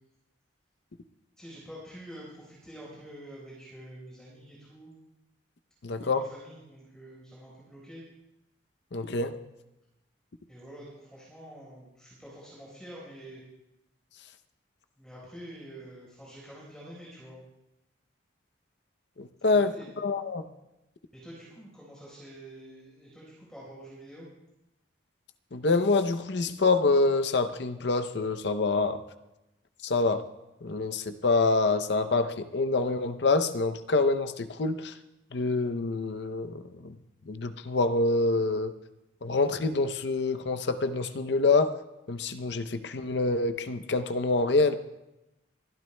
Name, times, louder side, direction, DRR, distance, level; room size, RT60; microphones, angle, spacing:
voice 1, 1.4-4.9 5.9-8.0 10.5-13.4 15.0-17.4 19.4-19.9 21.1-24.3, right 1 dB, 5° left, -6 dB, 4.2 m, -47 dB
voice 2, 5.8-6.2 8.9-9.3 19.2-19.7 20.0-20.4 25.5-29.0 29.8-30.2 30.6-34.9 35.3-36.9 37.3-38.7 39.2-41.7 42.1-44.8, left 3 dB, 65° left, 10 dB, 0.6 m, -26 dB
28.0 x 12.5 x 2.2 m, 0.93 s
head